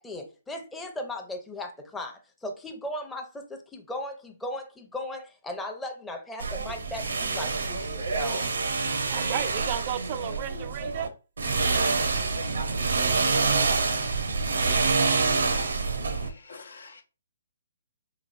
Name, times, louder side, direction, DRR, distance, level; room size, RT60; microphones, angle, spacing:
voice 1, 0.0-8.4, left 1 dB, 5° left, 0.7 m, -37 dB
sound 1, 6.4-11.1 11.4-16.3, right 4 dB, 75° right, 0.6 m, -26 dB
voice 2, 9.1-11.1, right 10 dB, 35° right, 0.3 m, -33 dB
voice 3, 16.2-17.0, left 4 dB, 75° left, 0.9 m, -47 dB
4.8 x 3.0 x 2.5 m
hypercardioid pair, 140°, 0 cm